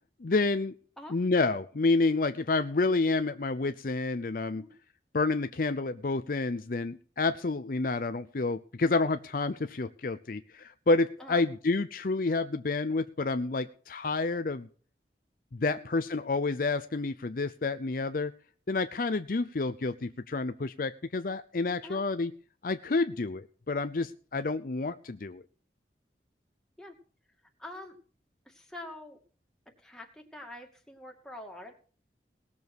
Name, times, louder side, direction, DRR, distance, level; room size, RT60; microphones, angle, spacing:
voice 1, 0.2-0.7 1.1-4.6 5.1-14.7 15.5-18.3 18.7-22.3 22.6-25.4, left 3 dB, 50° left, 10 dB, 0.6 m, -29 dB
voice 2, 27.6-28.0 28.5-29.2 29.7-31.8, left 1 dB, 5° left, 0 dB, 2.4 m, -45 dB
18.5 x 7.1 x 6.2 m, 0.43 s
head